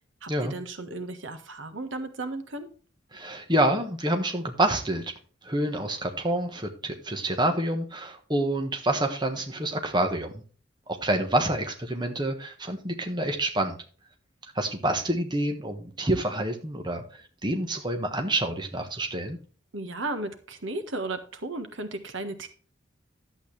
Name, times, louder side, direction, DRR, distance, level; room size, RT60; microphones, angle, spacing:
voice 1, 0.2-2.7 19.7-22.5, right 2 dB, 80° right, 8 dB, 1.5 m, -35 dB
voice 2, 3.1-5.1 5.4-10.4 10.9-13.7 14.5-19.4, right 1 dB, 20° right, 4 dB, 1.3 m, -27 dB
11.5 x 8.1 x 3.3 m, 0.40 s
head